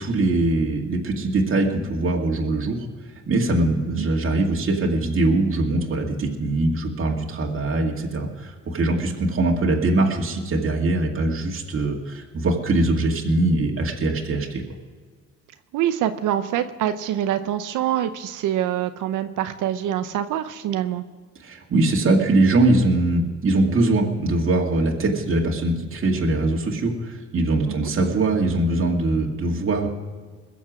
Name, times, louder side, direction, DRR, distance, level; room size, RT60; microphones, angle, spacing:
voice 1, 0.0-2.8 3.3-14.6 21.4-29.9, right 2 dB, 45° right, -1 dB, 2.3 m, -22 dB
voice 2, 15.7-21.0 27.7-27.9, right 11 dB, 85° right, 9 dB, 0.8 m, -25 dB
21.5 x 7.2 x 6.2 m, 1.5 s
cardioid pair, 90°, 30 cm